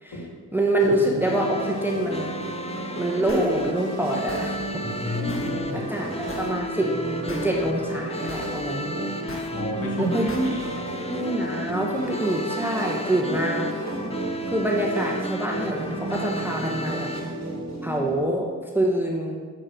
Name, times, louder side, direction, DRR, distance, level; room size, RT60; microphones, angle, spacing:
voice 1, 0.5-2.3 3.0-4.6 5.7-6.9 7.3-9.0 10.0-10.6 11.0-13.7 14.5-17.1 17.8-18.5 18.7-19.4, right 1 dB, 5° right, 0 dB, 1.2 m, -25 dB
sound 1, 0.8-18.2, right 2 dB, 40° right, 1.7 m, -33 dB
sound 2, 1.2-17.2, left 1 dB, 15° left, 0.7 m, -34 dB
sound 3, 3.3-3.5 4.3-4.5 5.3-5.5 6.3-6.5 7.3-7.5 8.3-8.5 9.3-9.5 10.3-10.5, left 2 dB, 30° left, 1.5 m, -37 dB
voice 2, 4.8-5.9 9.5-10.7, left 1 dB, 50° left, -3 dB, 2.4 m, -32 dB
7.4 x 4.6 x 5.1 m, 1.5 s
supercardioid pair, 40°, 43 cm